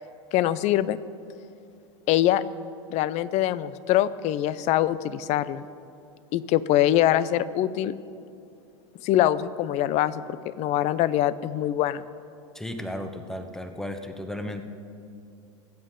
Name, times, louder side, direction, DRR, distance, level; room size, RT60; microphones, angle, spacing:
voice 1, 0.3-1.0 2.1-2.4 2.9-5.7 6.3-7.9 9.0-12.0, left 13 dB, 45° left, 17 dB, 0.6 m, -23 dB
voice 2, 12.5-14.6, left 1 dB, 5° left, 7 dB, 1.1 m, -34 dB
24.5 x 8.2 x 3.8 m, 2.6 s
hypercardioid pair, 100°, 16 cm